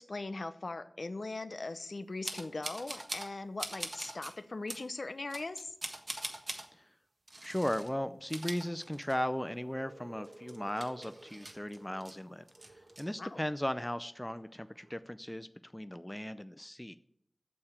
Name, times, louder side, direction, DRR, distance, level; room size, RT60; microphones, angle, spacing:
voice 1, 0.0-5.7 13.2-13.4, left 3 dB, 55° left, 11 dB, 0.7 m, -40 dB
sound 1, 2.2-3.3 3.6-4.3 4.7-4.8 5.3-6.7 7.3-7.9 8.2-9.4 9.7-9.8 10.2-12.1 12.5-13.0, right 1 dB, 40° right, 1.4 m, -42 dB
voice 2, 7.4-16.9, left 1 dB, 10° left, 11 dB, 0.4 m, -37 dB
sound 2, 8.8-14.9, right 2 dB, 60° right, 1.7 m, -57 dB
8.7 x 6.9 x 8.0 m, 0.69 s
wide cardioid pair, 80°, 0 cm